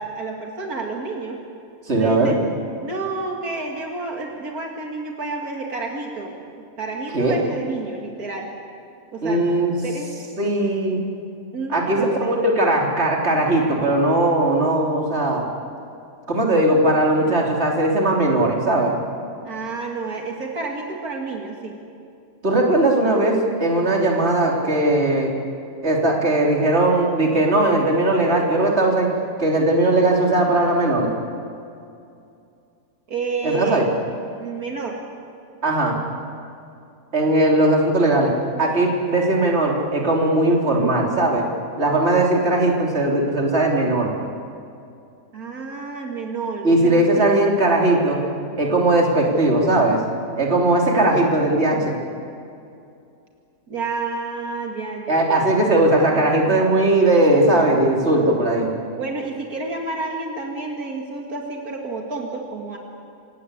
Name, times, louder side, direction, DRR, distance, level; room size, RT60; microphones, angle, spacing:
voice 1, 0.0-1.4 2.0-2.4 2.8-6.4 6.8-8.5 9.1-9.4 9.8-10.1 11.5-12.3 19.4-21.8 33.1-33.9 34.4-35.0 45.3-47.3 53.7-55.5 59.0-62.8, right 3 dB, 80° right, 1 dB, 2.7 m, -30 dB
voice 2, 1.9-2.3 7.1-7.4 9.2-9.7 10.4-11.0 11.7-15.5 16.3-18.9 22.4-25.3 25.8-29.1 29.4-31.1 33.4-33.9 35.6-36.0 37.1-38.3 38.6-41.4 41.8-44.1 46.6-48.2 48.6-50.0 50.4-51.9 55.1-58.7, right 1 dB, 45° right, -1 dB, 3.6 m, -18 dB
28.0 x 17.5 x 8.4 m, 2.5 s
omnidirectional pair, 1.5 m